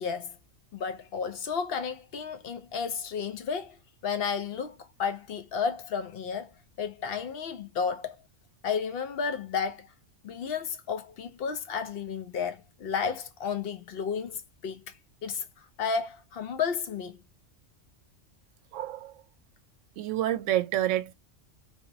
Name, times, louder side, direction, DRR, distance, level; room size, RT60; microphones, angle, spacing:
voice 1, 0.0-0.4 0.7-3.8 4.0-6.5 6.8-8.2 8.6-9.9 10.2-14.9 15.2-15.5 15.8-17.2, left 6 dB, 60° left, 0.7 m, -32 dB
voice 2, 18.7-19.2 20.0-21.1, right 13 dB, 80° right, 0.9 m, -28 dB
3.2 x 2.0 x 2.6 m
omnidirectional pair, 1.3 m